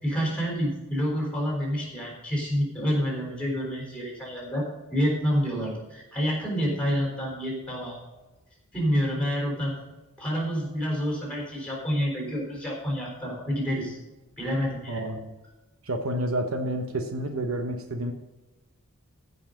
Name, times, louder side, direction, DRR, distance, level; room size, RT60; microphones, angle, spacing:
voice 1, 0.0-8.0 8.7-9.7 10.2-14.0 14.4-15.1, equal, 5° left, -2 dB, 3.8 m, -28 dB
voice 2, 14.9-15.3 15.8-18.1, right 1 dB, 65° right, 5 dB, 1.0 m, -29 dB
15.0 x 5.5 x 5.1 m, 1.1 s
head